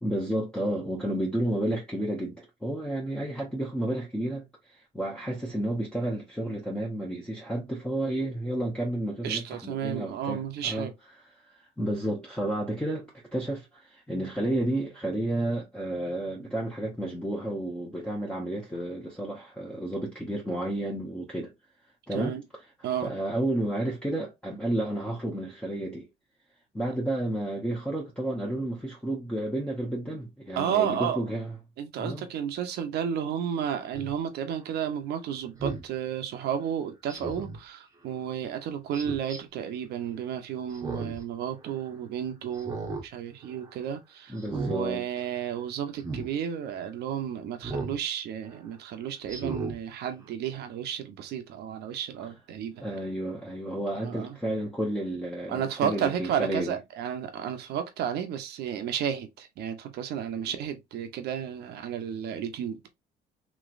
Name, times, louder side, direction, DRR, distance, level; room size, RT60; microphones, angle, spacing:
voice 1, 0.0-10.9 11.5-21.5 22.1-22.3 23.0-26.1 26.7-31.6 32.0-32.3 44.3-45.0 52.8-56.7, right 1 dB, 5° left, 1.0 m, -31 dB
voice 2, 9.2-10.9 22.1-22.4 22.8-23.1 30.6-31.2 31.8-52.8 53.9-54.4 55.5-62.8, right 9 dB, 75° right, 0.8 m, -32 dB
Speech synthesizer, 33.9-34.1 35.6-35.9 37.1-37.6 38.9-39.4 40.7-41.2 41.6-41.7 42.5-43.1 43.4-43.7 44.4-44.8 46.0-46.3 47.6-48.0 48.5-48.6 49.3-49.8 50.2-50.3, right 3 dB, 20° right, 1.0 m, -35 dB
3.1 x 3.0 x 2.5 m
cardioid pair, 110°, 17 cm